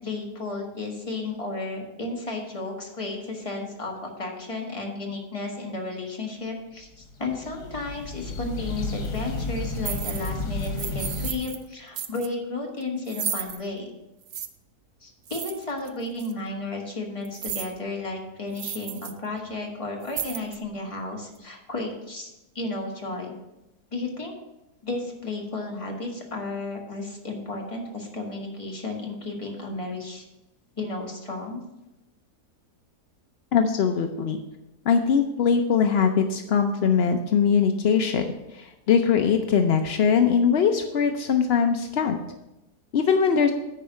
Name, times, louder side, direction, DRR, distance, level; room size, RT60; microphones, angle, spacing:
voice 1, 0.0-13.9 15.0-23.4 23.9-24.3 24.8-30.2 30.8-31.6, left 2 dB, 20° left, -1 dB, 1.6 m, -33 dB
sound 1, 6.9-11.3, left 2 dB, 85° left, 1.9 m, -32 dB
sound 2, 9.0-9.2 9.8-10.3 10.6-11.6 12.0-12.3 13.1-13.6 14.3-14.5 15.3-15.9 16.2-16.3 17.2-17.7 18.1-18.2 18.5-19.1 19.4-19.6 20.0-20.7, right 8 dB, 70° right, 0.6 m, -34 dB
voice 2, 33.5-34.4 34.9-38.3 38.5-42.2 42.9-43.5, left 6 dB, 70° left, 6 dB, 0.6 m, -21 dB
9.9 x 4.7 x 6.3 m, 0.95 s
omnidirectional pair, 1.7 m